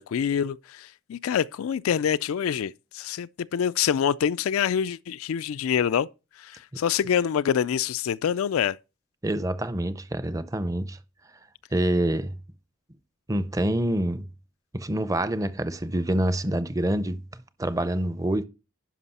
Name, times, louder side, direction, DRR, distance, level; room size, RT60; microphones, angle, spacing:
voice 1, 0.0-6.1 6.4-8.8, left 8 dB, 85° left, 0.3 m, -26 dB
voice 2, 9.2-11.0 11.7-12.3 13.3-14.3 14.7-18.4, right 1 dB, 15° right, 0.5 m, -26 dB
11.0 x 5.4 x 4.2 m
head